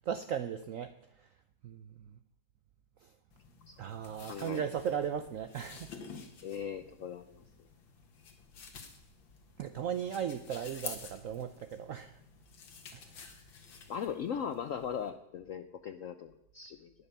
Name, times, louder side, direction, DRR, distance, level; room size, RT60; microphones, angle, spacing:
voice 1, 0.1-1.3 1.6-2.2 3.0-3.1 3.8-5.9 9.6-12.2 12.9-13.2, right 8 dB, 75° right, 10 dB, 0.7 m, -37 dB
sound 1, 3.3-15.1, left 5 dB, 90° left, 2.2 m, -51 dB
voice 2, 4.3-4.7 6.4-7.4 13.9-16.9, left 8 dB, 70° left, 10 dB, 0.7 m, -39 dB
11.0 x 9.9 x 6.7 m, 0.79 s
omnidirectional pair, 2.0 m